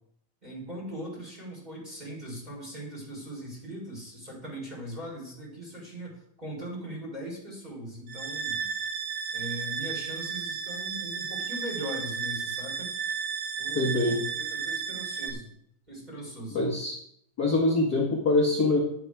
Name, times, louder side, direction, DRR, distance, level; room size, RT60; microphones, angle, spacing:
voice 1, 0.4-8.7 9.3-12.9 13.6-15.5 15.9-16.6, equal, 10° right, -3 dB, 4.7 m, -40 dB
sound 1, 8.1-15.3, right 6 dB, 55° right, 1.8 m, -33 dB
voice 2, 13.7-14.2 16.5-17.0 17.4-18.8, left 2 dB, 35° left, -3 dB, 1.9 m, -24 dB
11.0 x 9.7 x 4.9 m, 0.69 s
omnidirectional pair, 3.7 m